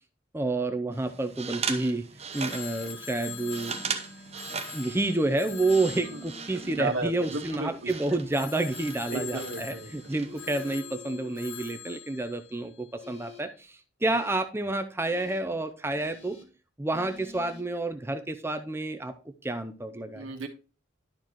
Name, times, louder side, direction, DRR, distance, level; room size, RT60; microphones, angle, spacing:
voice 1, 0.3-2.0 2.3-3.9 4.5-16.4 16.8-19.1 19.4-20.3, right 2 dB, 10° right, 8 dB, 0.5 m, -29 dB
sound 1, 0.9-10.8, right 6 dB, 30° right, 0.8 m, -39 dB
Telephone, 2.3-7.6 8.3-13.2, left 9 dB, 90° left, 2.5 m, -44 dB
sound 2, 3.3-4.5 5.4-6.9 7.9-9.5 10.2-11.6 13.0-13.4 14.1-14.3 15.0-15.4 16.0-16.4 16.9-17.6, left 2 dB, 30° left, 1.8 m, -49 dB
voice 2, 6.0-7.9 9.1-10.1 20.1-20.5, right 3 dB, 85° right, 1 dB, 1.3 m, -34 dB
11.5 x 4.7 x 3.0 m, 0.34 s
head